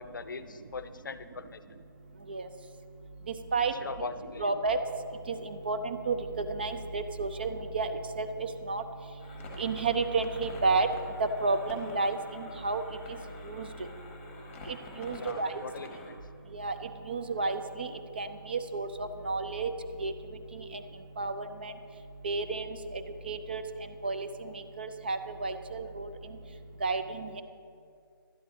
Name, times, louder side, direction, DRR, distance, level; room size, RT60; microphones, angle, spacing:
voice 1, 0.0-1.6 3.6-4.5 15.1-16.1, left 5 dB, 60° left, 12 dB, 0.5 m, -41 dB
voice 2, 4.4-4.8 5.3-8.3 8.7-8.8 9.6-10.9 11.2-12.8 13.5-13.7 14.7-15.5 16.5-16.7 17.1-17.9 18.2-19.7 20.0-20.1 21.2-21.7 22.2-22.7 22.9-23.6 24.0-24.3 24.8-26.1 26.8-27.3, right 3 dB, 25° right, 9 dB, 0.4 m, -31 dB
sound 1, 9.2-16.1, left 2 dB, 10° left, 1.1 m, -48 dB
12.0 x 10.0 x 3.9 m, 2.4 s
hypercardioid pair, 165°, 12 cm